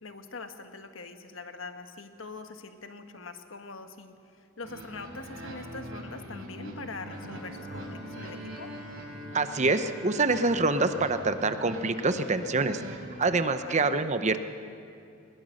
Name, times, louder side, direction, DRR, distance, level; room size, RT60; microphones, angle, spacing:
voice 1, 0.0-8.7 13.6-14.0, left 3 dB, 70° left, 7 dB, 1.4 m, -43 dB
sound 1, 4.6-13.4, right 1 dB, 75° right, 5.1 m, -43 dB
Bowed string instrument, 7.0-12.9, left 1 dB, ahead, 3.2 m, -47 dB
voice 2, 9.3-12.8 13.2-14.4, right 3 dB, 35° right, 10 dB, 0.8 m, -26 dB
21.0 x 20.5 x 6.5 m, 2.6 s
head